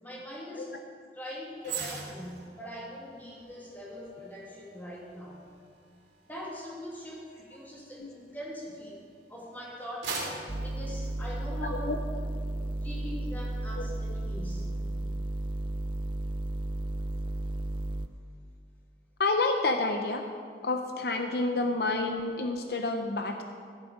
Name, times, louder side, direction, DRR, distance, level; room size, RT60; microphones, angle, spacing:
voice 1, 0.0-0.7 1.1-5.5 6.3-9.0 9.3-11.9 12.8-14.7, equal, 10° left, -4 dB, 2.4 m, -42 dB
sound 1, 1.6-9.0 9.5-11.9 12.2-12.4, right 4 dB, 80° right, 2.6 m, -43 dB
sound 2, 10.5-18.1, right 1 dB, 30° right, 0.5 m, -33 dB
voice 2, 19.2-20.2 20.6-23.4, left 3 dB, 60° left, 5 dB, 0.7 m, -29 dB
13.0 x 11.0 x 5.1 m, 2.2 s
head